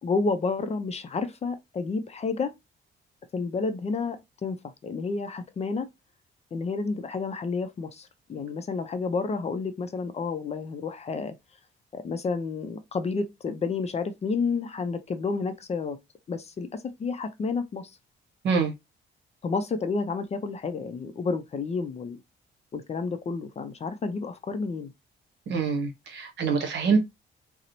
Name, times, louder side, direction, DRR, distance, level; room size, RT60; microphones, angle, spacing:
voice 1, 0.0-2.5 3.3-5.9 6.5-11.3 11.9-16.0 16.3-17.9 19.4-22.2 22.7-24.9, left 4 dB, 35° left, 0.4 m, -30 dB
voice 2, 25.5-27.0, right 5 dB, 65° right, 0.8 m, -25 dB
2.9 x 2.0 x 2.5 m
cardioid pair, 90°, 20 cm